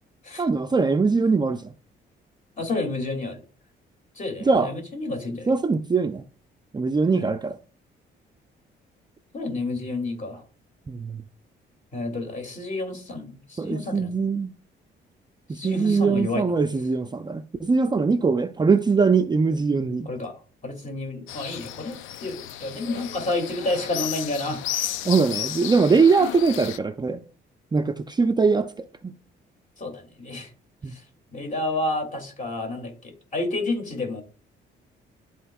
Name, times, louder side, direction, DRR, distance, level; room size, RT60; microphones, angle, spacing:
voice 1, 0.4-1.7 4.5-4.7 5.5-6.2 6.7-7.6 10.9-11.2 13.6-14.6 15.5-20.1 25.0-27.2 27.7-29.2 30.8-30.9, right 4 dB, 20° right, 0.4 m, -22 dB
voice 2, 2.6-3.4 4.1-5.5 7.1-7.2 9.3-10.4 11.9-14.1 15.5-16.4 20.0-20.3 20.6-25.0 29.8-30.5 30.9-31.0 31.3-34.2, left 2 dB, 40° left, 2.7 m, -30 dB
sound 1, 21.3-26.8, left 12 dB, 80° left, 0.5 m, -33 dB
12.0 x 4.4 x 2.3 m
cardioid pair, 90°, 20 cm